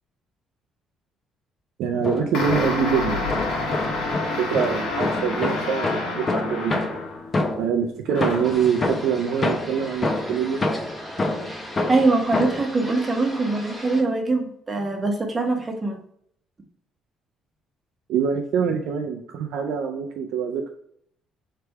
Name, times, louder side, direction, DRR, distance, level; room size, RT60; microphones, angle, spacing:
voice 1, 1.8-6.9 7.6-10.6 18.1-20.7, right 7 dB, 80° right, 2 dB, 0.4 m, -25 dB
sound 1, 1.9-2.9 3.3-7.8 8.2-12.7, left 2 dB, 25° left, 0.7 m, -27 dB
sound 2, 2.3-7.4 8.1-8.6, left 3 dB, 75° left, 1.4 m, -28 dB
sound 3, 8.4-14.0, equal, 5° left, 1.1 m, -38 dB
voice 2, 11.9-16.0, right 3 dB, 20° right, 3 dB, 1.0 m, -23 dB
3.4 x 3.3 x 4.5 m, 0.69 s
cardioid pair, 120°, 0 cm